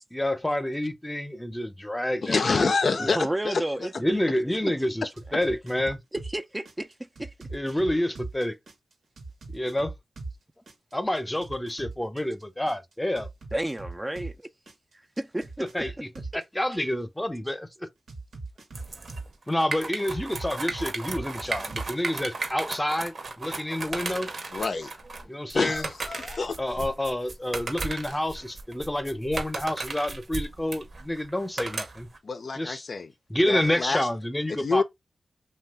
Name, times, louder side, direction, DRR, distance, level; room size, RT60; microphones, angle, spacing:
voice 1, 0.1-3.1 4.0-6.0 7.5-8.6 9.5-9.9 10.9-13.3 15.7-16.1 16.5-17.9 19.5-24.3 25.3-25.9 26.6-32.1 32.6-32.9 33.3-34.8, left 1 dB, 15° left, 0.6 m, -28 dB
voice 2, 2.2-3.9 24.5-24.9 25.5-26.6 32.2-33.1 33.5-34.1 34.5-34.8, left 4 dB, 65° left, 0.4 m, -27 dB
voice 3, 3.2-4.3 4.6-4.9 6.1-7.8 13.5-14.4 15.2-15.9 16.7-16.9, right 1 dB, 20° right, 0.3 m, -32 dB
sound 1, 5.2-6.3 6.6-10.4 10.7-14.3 14.7-16.4 18.1-19.7 20.1-22.0, right 3 dB, 85° right, 0.9 m, -40 dB
sound 2, 18.7-32.2, right 3 dB, 60° right, 0.7 m, -35 dB
2.8 x 2.3 x 3.3 m
cardioid pair, 40°, 0 cm